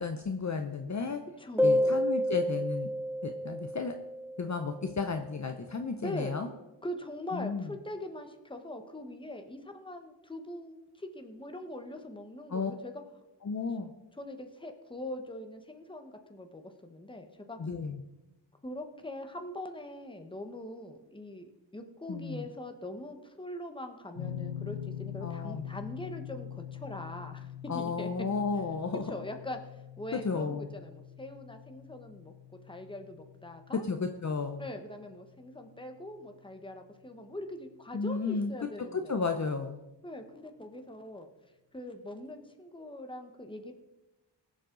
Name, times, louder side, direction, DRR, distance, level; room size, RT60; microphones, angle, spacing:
voice 1, 0.0-1.2 1.6-2.9 3.2-3.9 4.4-6.5 7.3-7.7 12.5-12.7 13.4-13.9 17.6-18.0 22.1-22.4 25.2-25.7 27.7-29.1 30.1-30.8 33.7-34.7 37.9-38.5 38.9-39.8, left 4 dB, 40° left, 6 dB, 0.8 m, -33 dB
voice 2, 1.4-2.1 6.0-6.4 6.8-12.9 14.2-17.6 18.6-27.5 27.7-28.1 28.9-29.6 30.0-32.3 32.7-33.9 34.6-39.1 40.0-41.3 41.7-43.7, left 1 dB, 10° left, 5 dB, 1.2 m, -42 dB
sound 1, 1.6-4.9, equal, 5° right, 0.7 m, -29 dB
sound 2, 24.2-37.1, left 10 dB, 80° left, 1.2 m, -44 dB
22.0 x 7.6 x 3.9 m, 1.0 s
wide cardioid pair, 140°, 43 cm